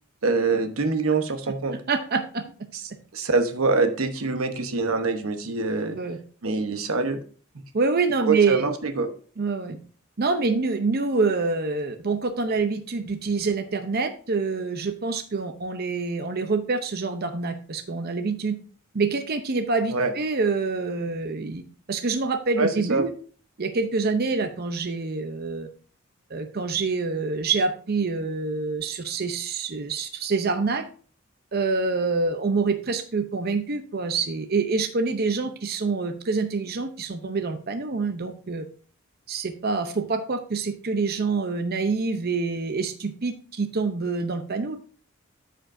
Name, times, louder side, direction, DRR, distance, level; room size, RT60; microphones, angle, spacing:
voice 1, 0.2-1.8 3.1-6.0 6.4-7.2 8.3-9.1 19.9-20.1 22.6-23.0, right 4 dB, 85° right, 7 dB, 1.0 m, -24 dB
voice 2, 1.9-2.4 5.9-6.2 7.7-8.6 9.4-9.8 10.2-18.5 18.9-21.6 21.9-23.1 23.6-25.7 26.3-30.8 31.5-38.6 39.3-44.8, right 4 dB, 50° right, 6 dB, 0.7 m, -26 dB
13.5 x 5.1 x 2.6 m, 0.42 s
head